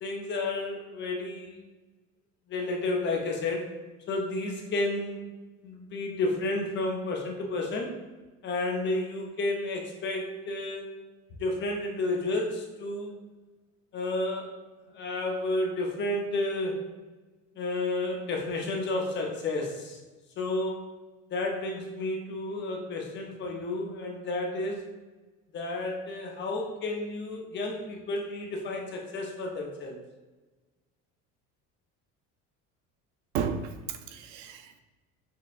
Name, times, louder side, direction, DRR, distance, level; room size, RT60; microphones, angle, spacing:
voice 1, 0.0-1.6 2.5-5.2 5.6-7.9 8.4-10.9 11.4-13.1 13.9-14.6 14.9-16.8 17.6-20.0 20.4-20.9 21.3-24.9 25.5-30.0, left 2 dB, 40° left, 0.7 m, -31 dB
voice 2, 33.3-34.8, right 6 dB, 75° right, 0.5 m, -33 dB
6.2 x 2.2 x 2.4 m
cardioid pair, 150°, 30 cm